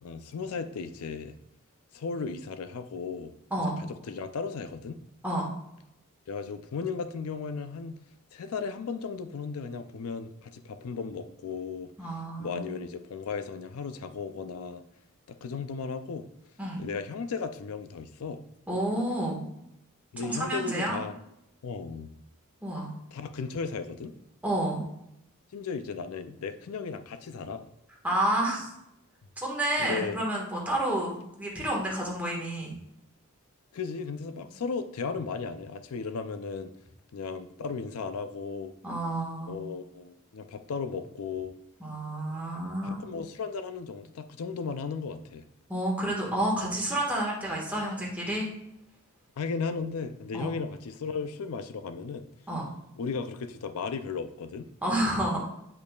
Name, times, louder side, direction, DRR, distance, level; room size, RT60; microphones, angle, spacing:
voice 1, 0.0-1.3 1.9-3.3 3.8-5.0 6.3-8.0 8.3-11.9 12.4-14.8 15.3-16.3 16.8-18.4 20.1-21.1 21.6-22.1 23.1-24.2 25.5-27.7 29.8-30.2 33.7-36.7 37.1-38.7 39.5-41.6 42.8-45.5 49.4-52.3 53.0-54.7, left 5 dB, 80° left, 10 dB, 0.4 m, -35 dB
voice 2, 12.0-12.6 16.6-16.8 18.7-19.4 20.2-21.0 22.6-22.9 24.4-24.8 28.0-28.7 29.4-32.8 38.8-39.5 41.8-43.0 45.7-48.5 50.3-50.5 52.5-52.6 54.8-55.5, right 1 dB, 5° right, -3 dB, 1.5 m, -30 dB
8.4 x 5.2 x 2.3 m, 0.80 s
head